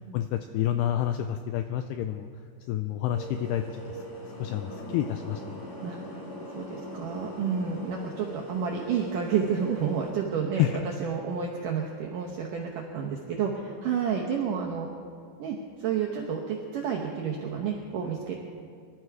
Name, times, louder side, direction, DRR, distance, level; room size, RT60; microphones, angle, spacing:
voice 1, 0.1-2.3 2.7-4.0 4.4-5.7 10.6-10.8, left 11 dB, 85° left, 8 dB, 2.4 m, -29 dB
sound 1, 3.1-10.1, right 1 dB, 50° left, 1.1 m, -41 dB
voice 2, 5.8-6.2 6.6-10.7 11.0-14.9 15.4-18.4, right 7 dB, 75° right, -1 dB, 1.9 m, -30 dB
23.5 x 12.5 x 4.8 m, 2.2 s
omnidirectional pair, 5.3 m